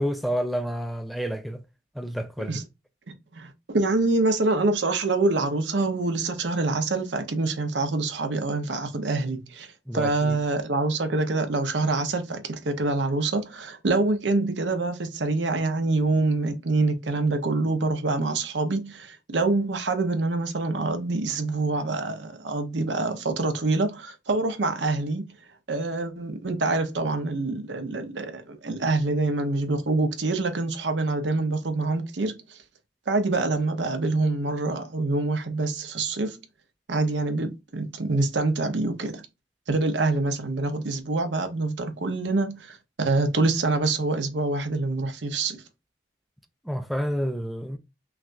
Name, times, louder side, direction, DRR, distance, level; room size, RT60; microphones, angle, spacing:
voice 1, 0.0-1.6 2.0-2.6 9.9-10.4 46.7-47.8, equal, ahead, 0.3 m, -29 dB
voice 2, 3.3-9.7 9.9-25.3 25.7-32.6 33.1-36.4 36.9-39.2 39.7-45.6, right 3 dB, 75° right, 0.8 m, -26 dB
5.8 x 2.3 x 2.5 m
head